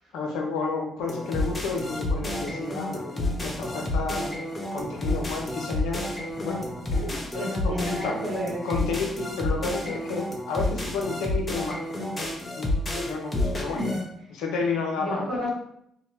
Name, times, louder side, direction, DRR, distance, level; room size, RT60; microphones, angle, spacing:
voice 1, 0.1-4.5 4.7-6.0 6.4-6.6 6.9-8.2 8.6-12.3 12.6-13.8 14.3-15.3, left 4 dB, 80° left, 1 dB, 0.5 m, -31 dB
sound 1, 1.0-11.7, equal, 60° right, 0.6 m, -46 dB
sound 2, 1.1-14.0, left 1 dB, 30° left, 0.7 m, -30 dB
voice 2, 7.0-8.7 13.7-14.0 14.9-15.5, left 1 dB, 90° right, -9 dB, 1.1 m, -31 dB
2.8 x 2.1 x 2.8 m, 0.74 s
hypercardioid pair, 50°, 0 cm